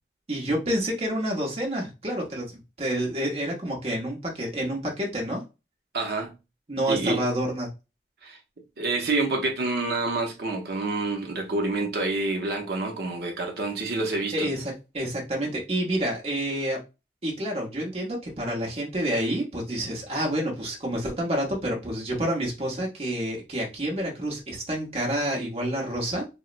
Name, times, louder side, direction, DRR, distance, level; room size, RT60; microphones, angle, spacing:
voice 1, 0.3-5.4 6.7-7.7 14.3-16.8 17.2-26.3, right 1 dB, 35° right, 0.9 m, -28 dB
voice 2, 5.9-6.3 6.9-7.2 8.2-8.4 8.8-14.5, right 2 dB, 60° right, 0.6 m, -27 dB
4.1 x 2.0 x 2.5 m
head